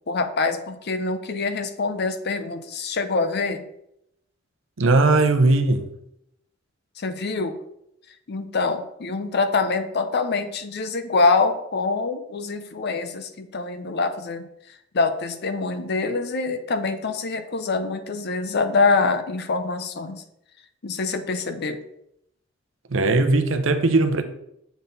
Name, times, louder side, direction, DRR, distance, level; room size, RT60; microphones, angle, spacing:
voice 1, 0.1-3.6 7.0-7.6 8.3-14.4 14.9-20.2 20.8-21.8, left 4 dB, 55° left, 0.6 m, -25 dB
voice 2, 4.8-5.9 22.9-24.2, right 2 dB, 70° right, 0.7 m, -19 dB
7.1 x 4.1 x 3.8 m
head